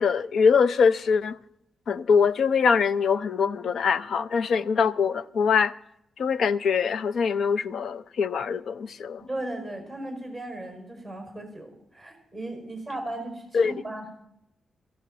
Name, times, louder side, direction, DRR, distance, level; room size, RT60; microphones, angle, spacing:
voice 1, 0.0-1.4 1.9-5.7 6.2-9.2 13.5-13.7, left 6 dB, 60° left, 0.5 m, -23 dB
voice 2, 9.2-14.3, right 1 dB, 10° left, 5.4 m, -36 dB
17.5 x 14.5 x 4.2 m
wide cardioid pair, 145°, 0 cm